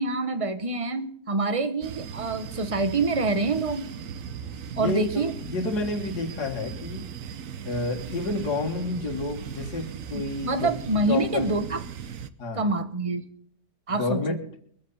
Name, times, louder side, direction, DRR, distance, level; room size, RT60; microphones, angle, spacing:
voice 1, 0.0-3.8 4.8-5.3 10.1-11.8 12.6-13.2 13.9-14.4, right 3 dB, 25° right, 9 dB, 0.9 m, -26 dB
sound 1, 1.8-12.3, right 7 dB, 60° right, 1.0 m, -38 dB
voice 2, 4.7-7.1 7.6-10.7 11.1-11.5 12.4-12.7 13.9-14.4, left 3 dB, 65° left, 2 dB, 2.2 m, -30 dB
22.5 x 7.7 x 5.6 m, 0.64 s
omnidirectional pair, 1.9 m